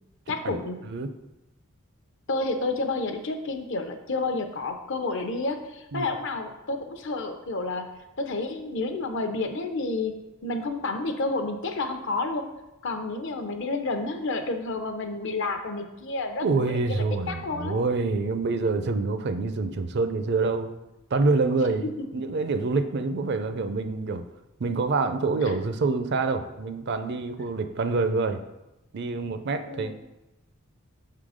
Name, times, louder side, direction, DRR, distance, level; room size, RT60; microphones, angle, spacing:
voice 1, 0.3-0.8 2.3-7.9 8.2-10.1 10.4-12.5 12.8-17.8 21.5-22.1 25.4-25.6 29.6-29.9, left 3 dB, 60° left, 6 dB, 0.7 m, -30 dB
voice 2, 16.4-20.7 21.1-24.2 24.6-28.4 28.9-29.9, right 3 dB, 50° right, 9 dB, 0.4 m, -26 dB
6.6 x 3.8 x 4.9 m, 0.98 s
head